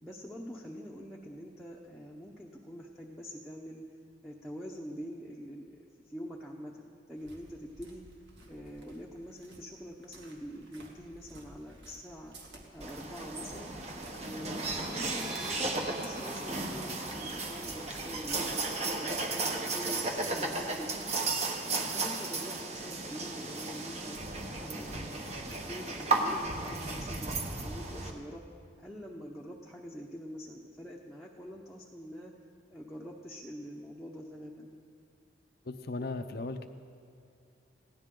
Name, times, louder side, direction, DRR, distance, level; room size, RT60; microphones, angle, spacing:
voice 1, 0.0-3.8 4.2-8.0 8.5-12.3 12.7-13.8 14.2-21.0 21.6-24.2 24.6-28.4 28.8-32.3 32.7-34.7, equal, ahead, -4 dB, 0.9 m, -45 dB
sound 1, 7.2-19.0, right 1 dB, 70° right, 2.2 m, -54 dB
sound 2, 12.8-28.1, right 3 dB, 35° right, 1.2 m, -35 dB
sound 3, 14.4-19.8, right 2 dB, 20° right, 2.3 m, -47 dB
voice 2, 35.6-36.7, left 3 dB, 55° left, 7 dB, 0.6 m, -37 dB
21.0 x 16.5 x 3.8 m, 2.6 s
head